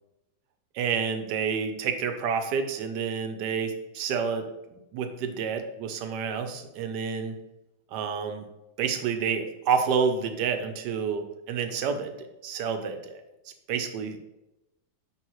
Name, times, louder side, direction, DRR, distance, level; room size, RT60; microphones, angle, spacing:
voice 1, 0.7-4.5 4.9-7.3 7.9-8.4 8.8-12.1 12.4-13.2 13.7-14.2, right 6 dB, 70° right, 7 dB, 1.2 m, -29 dB
10.5 x 3.8 x 3.1 m, 0.95 s
omnidirectional pair, 2.1 m